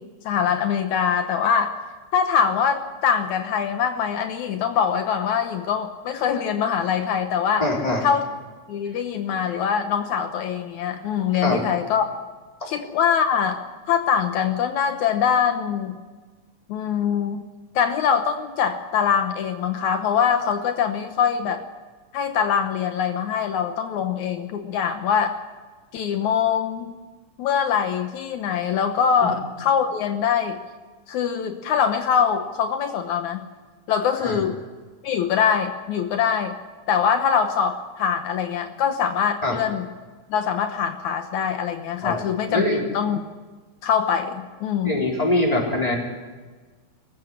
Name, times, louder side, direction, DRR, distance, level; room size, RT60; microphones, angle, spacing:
voice 1, 0.0-1.7 2.1-7.7 8.0-8.2 8.7-12.1 12.7-13.6 13.9-16.0 16.7-17.5 17.8-21.6 22.1-25.3 25.9-26.9 27.4-30.6 31.1-33.4 33.9-34.6 35.0-36.6 36.9-39.9 40.3-42.7 42.9-43.2 43.8-45.0, left 7 dB, 75° left, 7 dB, 2.4 m, -23 dB
voice 2, 7.6-8.0 11.3-11.6 12.6-12.7 29.2-29.3 34.2-34.4 39.4-39.6 42.0-42.2 42.5-42.8 44.8-46.0, left 1 dB, 10° left, -1 dB, 4.5 m, -23 dB
21.5 x 15.0 x 9.9 m, 1.3 s
omnidirectional pair, 3.5 m